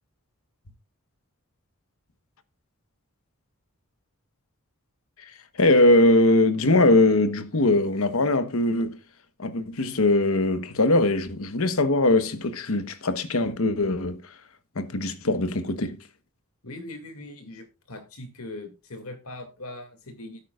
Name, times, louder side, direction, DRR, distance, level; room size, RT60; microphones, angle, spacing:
voice 1, 5.6-9.0 9.4-14.2 14.8-16.0, left 2 dB, 70° left, 1.1 m, -21 dB
voice 2, 16.6-20.5, left 2 dB, 90° left, 2.4 m, -40 dB
16.5 x 8.6 x 2.4 m
head